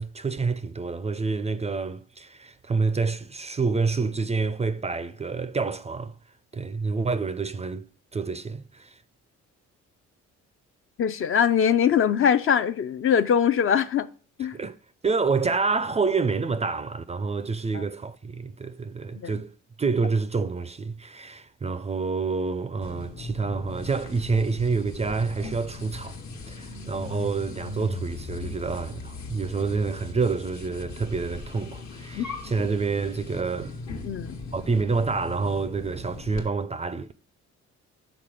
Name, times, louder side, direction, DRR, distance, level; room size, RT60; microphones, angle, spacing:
voice 1, 0.0-6.1 6.5-7.9 8.1-9.0 14.5-14.8 15.0-19.5 19.8-26.2 26.5-33.8 34.5-37.1, right 4 dB, 20° right, 0.4 m, -28 dB
voice 2, 11.0-14.1 14.4-14.6 17.7-17.8 19.2-19.3 32.1-32.2 34.0-34.4, left 8 dB, 45° left, 0.4 m, -22 dB
sound 1, 22.8-36.5, left 2 dB, 70° left, 1.2 m, -38 dB
5.9 x 4.1 x 4.9 m
cardioid pair, 90°, 30 cm